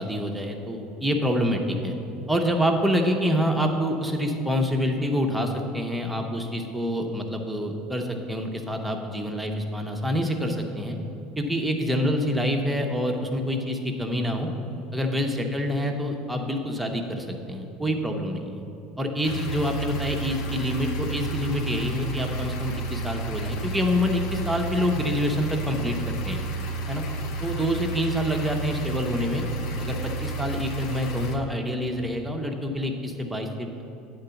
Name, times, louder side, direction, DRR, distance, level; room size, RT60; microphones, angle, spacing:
voice 1, 0.0-2.0 2.3-11.0 11.4-14.5 14.9-18.6 19.0-26.4 26.9-27.0 27.4-29.4 29.8-33.8, equal, 5° right, 2 dB, 1.0 m, -27 dB
sound 1, 19.2-31.4, right 2 dB, 60° left, 0.8 m, -31 dB
8.7 x 3.9 x 7.0 m, 2.8 s
supercardioid pair, 90°, 0 cm